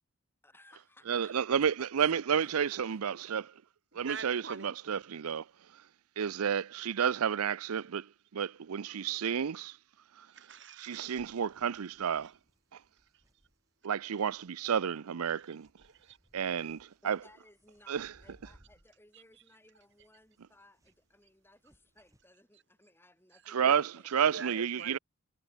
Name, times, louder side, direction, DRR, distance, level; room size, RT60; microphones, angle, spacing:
voice 1, 0.4-3.0 17.0-24.1, left 1 dB, 10° left, 3.7 m, -62 dB
voice 2, 1.1-3.5 3.9-5.5 5.7-5.8 6.2-9.8 10.2-10.3 10.8-12.3 12.7-12.8 13.8-15.6 16.3-17.2 17.9-18.1 23.5-25.0, right 7 dB, 90° right, 0.5 m, -31 dB
voice 3, 3.9-4.8 10.3-11.4 12.2-12.3 12.7-12.8 13.1-13.2 15.3-16.2 19.1-19.4 22.5-22.6 23.3-23.5 24.3-25.0, right 5 dB, 55° right, 3.0 m, -46 dB
sound 1, 11.2-22.3, equal, 15° right, 4.5 m, -67 dB
head